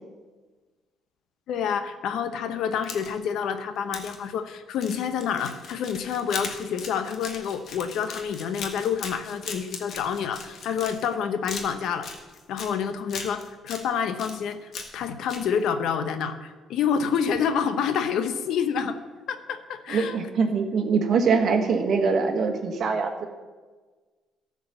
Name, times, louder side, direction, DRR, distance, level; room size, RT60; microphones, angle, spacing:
voice 1, 1.5-12.1 12.5-19.0 19.3-20.2, left 7 dB, 75° left, 10 dB, 0.8 m, -28 dB
sound 1, 2.7-3.3 3.9-4.2 4.8-11.1 11.4-12.7 13.1-13.8 14.2-15.0 15.3-15.4, left 5 dB, 55° left, 1.5 m, -38 dB
voice 2, 19.9-23.3, right 5 dB, 55° right, 4 dB, 1.4 m, -23 dB
14.0 x 4.9 x 6.7 m, 1.4 s
cardioid pair, 115°, 0 cm